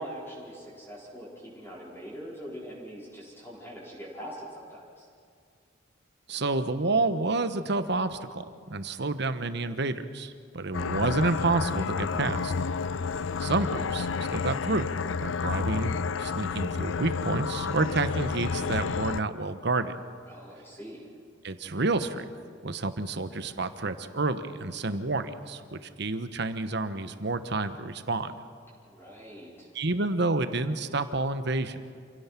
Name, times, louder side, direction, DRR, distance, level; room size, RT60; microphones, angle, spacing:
voice 1, 0.0-5.1 20.2-21.1 28.8-29.7, equal, 10° left, -6 dB, 4.7 m, -43 dB
voice 2, 6.3-12.5 13.4-14.9 15.2-15.9 16.2-20.0 21.4-22.3 22.6-28.3 29.7-31.8, right 3 dB, 60° right, 10 dB, 1.2 m, -29 dB
sound 1, 10.7-19.2, left 5 dB, 80° left, 0.5 m, -30 dB
28.0 x 17.0 x 6.0 m, 2.2 s
head